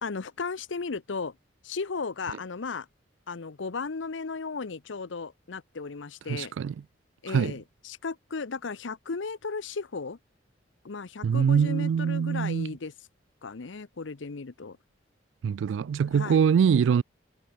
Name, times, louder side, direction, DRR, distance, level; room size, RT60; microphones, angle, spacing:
voice 1, 0.0-1.3 1.6-2.9 3.3-6.5 7.2-10.2 10.8-12.9 13.4-14.8 16.1-16.4, left 4 dB, 80° left, 0.7 m, -35 dB
voice 2, 6.3-6.7 7.3-7.5 11.2-12.8 15.4-17.0, right 7 dB, 80° right, 0.3 m, -24 dB
head